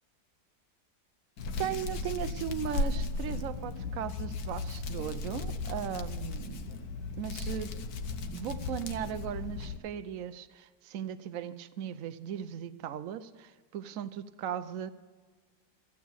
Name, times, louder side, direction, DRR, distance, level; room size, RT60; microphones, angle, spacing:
Hands, 1.4-9.8, left 3 dB, 60° left, 1.3 m, -36 dB
voice 1, 1.6-6.7 7.2-7.7 8.3-14.9, right 9 dB, 65° right, 13 dB, 0.9 m, -37 dB
15.0 x 9.3 x 7.0 m, 1.4 s
omnidirectional pair, 1.9 m